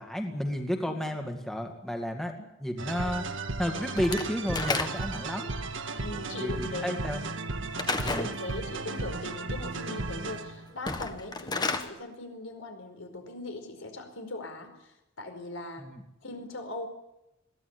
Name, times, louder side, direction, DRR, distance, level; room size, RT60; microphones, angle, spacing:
voice 1, 0.0-3.3 3.6-5.5 6.0-6.1 6.4-7.2 8.0-8.3 15.8-16.0, equal, ahead, 3 dB, 2.2 m, -32 dB
sound 1, 2.8-10.7, right 3 dB, 65° right, 1.7 m, -35 dB
Slam / Wood, 4.0-5.3 7.8-8.3 10.7-11.9, left 3 dB, 20° left, 1.5 m, -31 dB
voice 2, 6.0-7.0 8.0-15.9 16.2-16.9, left 2 dB, 75° left, 6 dB, 4.9 m, -40 dB
22.0 x 16.5 x 9.7 m, 0.90 s
head